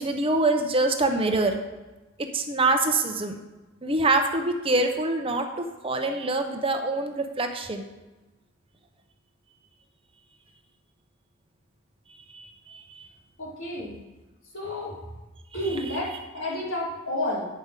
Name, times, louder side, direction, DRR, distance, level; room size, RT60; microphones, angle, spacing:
voice 1, 0.0-1.6 2.3-3.4 3.8-7.8 12.3-13.1 15.7-16.0, right 2 dB, 25° right, 5 dB, 0.8 m, -25 dB
voice 2, 13.4-14.0 14.5-14.9 15.5-17.5, left 1 dB, 80° left, -6 dB, 3.7 m, -30 dB
9.6 x 5.2 x 6.6 m, 1.1 s
head